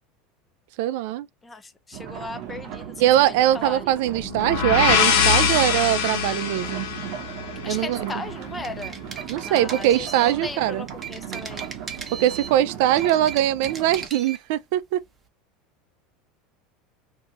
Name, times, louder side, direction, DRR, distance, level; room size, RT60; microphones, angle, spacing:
voice 1, 0.8-1.3 3.0-6.9 7.7-8.2 9.3-10.9 12.2-15.0, right 13 dB, 70° right, 0.3 m, -22 dB
voice 2, 1.4-3.9 7.6-9.0 9.4-11.7, left 3 dB, 15° left, 0.4 m, -37 dB
sound 1, 1.9-14.1, right 9 dB, 50° right, 0.8 m, -37 dB
sound 2, 4.2-8.0, left 7 dB, 75° left, 1.3 m, -23 dB
sound 3, 8.5-10.4 10.9-12.6 12.9-14.4, right 7 dB, 20° right, 0.7 m, -37 dB
2.6 x 2.4 x 3.0 m
supercardioid pair, 140°, 0 cm